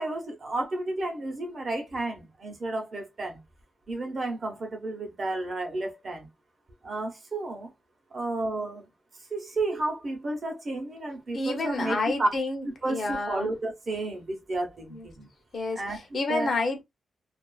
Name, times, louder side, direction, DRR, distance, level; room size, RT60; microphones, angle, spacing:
voice 1, 0.0-3.4 3.9-6.3 6.8-7.7 8.1-8.9 9.3-12.3 12.8-15.3 15.8-16.5, right 2 dB, 35° right, 0.8 m, -32 dB
voice 2, 11.3-13.5 14.9-15.1 15.5-16.8, left 2 dB, 40° left, 0.7 m, -30 dB
2.4 x 2.4 x 2.3 m
wide cardioid pair, 170°, 0 cm